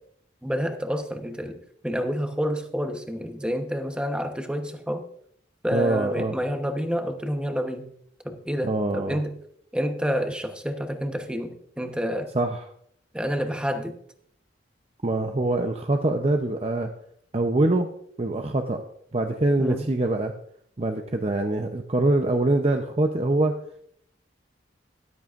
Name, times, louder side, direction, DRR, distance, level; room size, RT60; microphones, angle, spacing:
voice 1, 0.4-5.0 5.6-7.9 8.2-9.4 9.7-12.3 13.1-13.9 19.6-19.9, equal, 5° right, 5 dB, 1.0 m, -29 dB
voice 2, 5.7-6.3 8.6-9.2 12.3-12.6 15.0-16.9 17.3-17.9 18.2-18.8 19.1-20.3 20.8-23.5, right 2 dB, 35° right, 4 dB, 0.7 m, -24 dB
13.5 x 12.5 x 2.5 m, 0.67 s
head